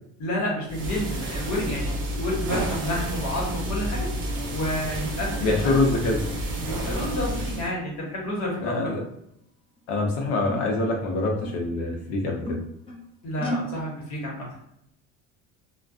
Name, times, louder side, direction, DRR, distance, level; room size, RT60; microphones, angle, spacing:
voice 1, 0.2-4.1 4.5-5.8 6.6-8.7 13.2-14.5, left 1 dB, 50° left, -3 dB, 1.2 m, -30 dB
sound 1, 0.7-7.7, right 1 dB, 35° right, 0.8 m, -30 dB
voice 2, 5.4-6.2 8.6-9.0 9.9-12.6, left 2 dB, 85° left, 1 dB, 0.8 m, -25 dB
sound 2, 8.8-9.1 9.8-9.9 10.5-11.8 12.2-13.1 13.4-13.8, equal, 15° left, 0.7 m, -34 dB
2.4 x 2.3 x 2.4 m, 0.76 s
cardioid pair, 125°, 34 cm